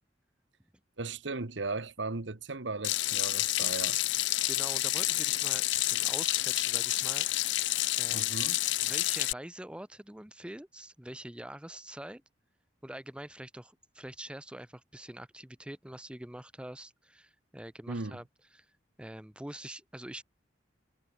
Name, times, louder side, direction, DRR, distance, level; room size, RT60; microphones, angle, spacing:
voice 1, 1.0-4.0 8.1-8.6 17.9-18.2, right 3 dB, 85° right, 1.4 m, -37 dB
Water tap faucet / Sink (filling or washing), 2.8-9.3, left 16 dB, 80° left, 0.5 m, -29 dB
voice 2, 4.5-7.3 8.0-8.4 8.8-12.2 12.8-18.2 18.5-18.7 19.0-20.2, right 1 dB, 5° right, 0.8 m, -45 dB
head